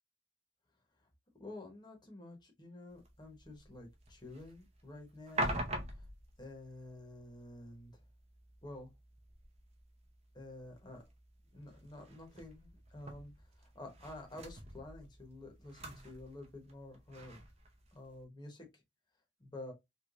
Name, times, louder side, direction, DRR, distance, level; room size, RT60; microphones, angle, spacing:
voice 1, 1.4-5.6 5.9-6.1 6.4-8.0 8.6-8.9 10.3-11.0 11.5-17.4 17.9-18.8 19.4-19.7, left 2 dB, 20° left, 1.0 m, -50 dB
sound 1, 2.9-18.2, right 1 dB, 30° right, 0.7 m, -46 dB
3.2 x 3.0 x 2.4 m
head